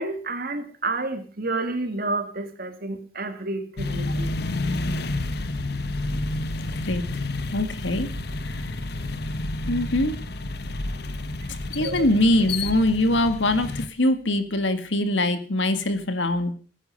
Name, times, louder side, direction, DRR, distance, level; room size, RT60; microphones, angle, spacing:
voice 1, 0.0-4.4 11.4-11.5 11.8-12.1, right 2 dB, 50° right, 7 dB, 2.5 m, -30 dB
sound 1, 3.8-13.9, left 2 dB, 55° left, 1.1 m, -30 dB
voice 2, 7.5-8.1 8.4-8.7 9.7-10.1 11.7-16.5, left 1 dB, 75° left, 9 dB, 2.1 m, -23 dB
18.0 x 10.0 x 6.7 m, 0.41 s
head